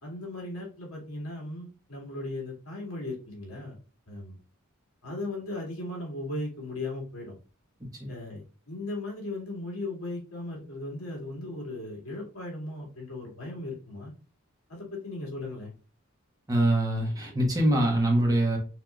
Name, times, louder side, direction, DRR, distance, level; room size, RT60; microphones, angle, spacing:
voice 1, 0.0-3.8 4.1-4.4 5.0-7.3 8.1-8.4 8.7-14.1 14.7-15.7, left 2 dB, 85° left, -2 dB, 2.3 m, -37 dB
voice 2, 16.5-18.6, right 1 dB, 15° right, 0 dB, 1.2 m, -24 dB
5.8 x 3.2 x 2.4 m, 0.37 s
head